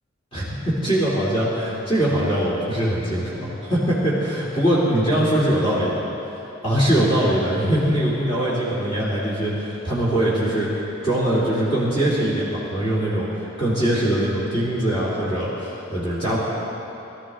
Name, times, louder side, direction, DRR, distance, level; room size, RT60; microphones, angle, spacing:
voice 1, 0.3-6.0 6.6-16.4, right 1 dB, 30° left, -8 dB, 2.7 m, -22 dB
22.0 x 13.5 x 3.7 m, 2.9 s
head